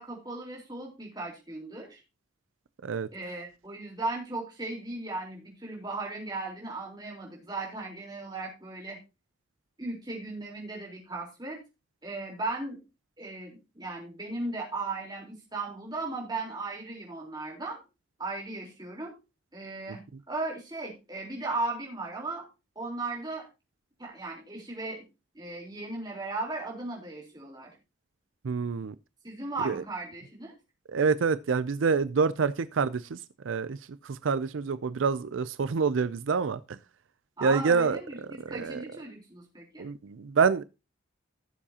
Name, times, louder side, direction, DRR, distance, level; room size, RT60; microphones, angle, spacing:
voice 1, 0.0-2.0 3.1-9.0 9.8-11.6 12.0-12.8 13.2-17.8 18.2-19.1 19.5-22.5 22.8-23.5 24.0-25.1 25.3-27.7 29.2-30.5 37.4-39.9, right 2 dB, 20° right, 3.8 m, -36 dB
voice 2, 28.4-28.9 29.6-29.8 30.9-33.2 33.4-33.8 34.0-36.8 37.4-38.0 38.5-38.8 39.8-40.6, right 5 dB, 85° right, 0.5 m, -27 dB
16.0 x 7.2 x 2.8 m
head